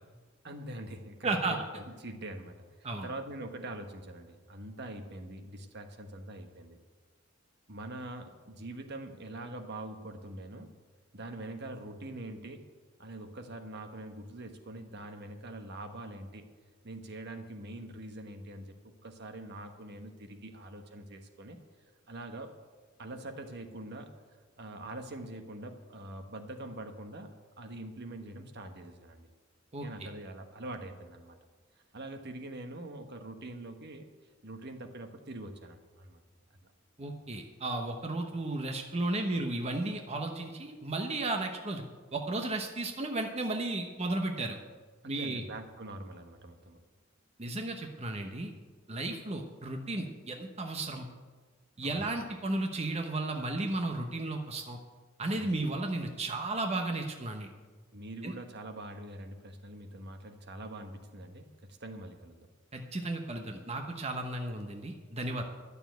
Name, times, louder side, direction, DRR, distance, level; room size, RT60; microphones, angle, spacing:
voice 1, 0.4-6.8 7.7-10.7 11.1-12.7 13.0-16.5 16.8-18.7 19.0-21.6 22.1-22.6 23.0-24.1 24.6-27.3 27.6-29.3 29.8-31.4 31.9-34.1 34.4-36.2 45.0-46.8 51.8-52.1 55.3-55.6 57.9-62.4, right 1 dB, 55° right, 6 dB, 1.2 m, -44 dB
voice 2, 1.2-1.6 2.8-3.1 29.7-29.9 37.0-41.8 42.1-44.6 45.0-45.4 47.4-48.5 48.9-51.1 51.8-54.8 55.2-57.5 58.2-58.3 62.7-65.4, right 2 dB, 30° right, 3 dB, 1.0 m, -34 dB
11.5 x 6.9 x 9.2 m, 1.4 s
head